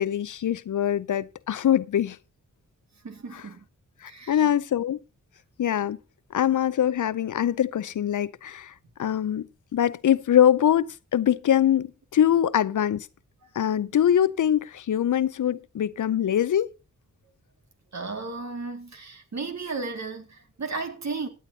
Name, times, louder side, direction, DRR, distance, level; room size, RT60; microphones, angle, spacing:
voice 1, 0.0-2.2 3.3-3.4 4.0-5.0 5.6-6.0 6.3-8.7 9.0-13.1 13.5-16.7, left 10 dB, 65° left, 0.6 m, -23 dB
voice 2, 3.0-3.7 4.1-4.5 17.9-21.3, right 4 dB, 55° right, 2.2 m, -34 dB
16.5 x 9.3 x 2.8 m
cardioid pair, 50°, 33 cm